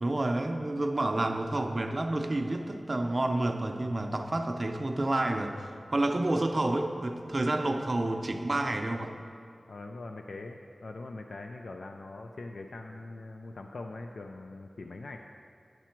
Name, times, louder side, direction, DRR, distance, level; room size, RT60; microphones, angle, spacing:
voice 1, 0.0-9.1, right 2 dB, 40° right, 4 dB, 0.5 m, -29 dB
voice 2, 9.7-15.2, left 2 dB, 85° left, 3 dB, 0.4 m, -42 dB
10.5 x 6.0 x 4.5 m, 2.3 s
wide cardioid pair, 85°, 0 cm